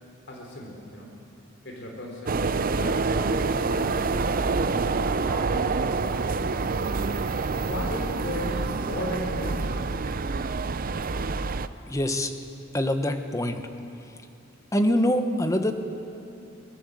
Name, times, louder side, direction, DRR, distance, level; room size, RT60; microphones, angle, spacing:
voice 1, 0.3-1.1 1.6-6.3 7.5-9.9, left 1 dB, 60° left, 0 dB, 4.0 m, -36 dB
sound 1, 2.3-11.7, right 4 dB, 45° right, 0.6 m, -27 dB
voice 2, 11.9-12.3 12.7-13.6 14.7-15.7, left 1 dB, 15° left, 7 dB, 1.2 m, -24 dB
23.0 x 19.0 x 7.7 m, 2.8 s
head